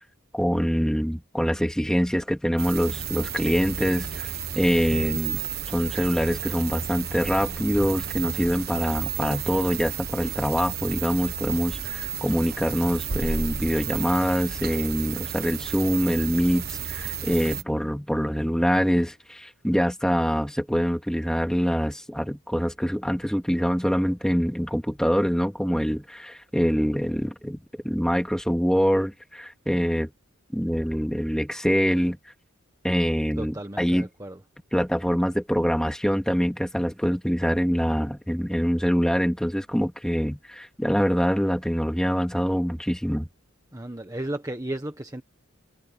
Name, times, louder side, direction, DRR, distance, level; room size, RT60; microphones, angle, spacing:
voice 1, 0.3-5.4 5.7-27.6 27.8-30.1 30.5-32.2 32.8-34.1 34.7-43.3, equal, 5° left, 3.3 m, -24 dB
sound 1, 2.6-17.6, right 7 dB, 45° right, 1.3 m, -32 dB
voice 2, 33.4-34.4 43.7-45.2, right 1 dB, 15° right, 1.3 m, -34 dB
head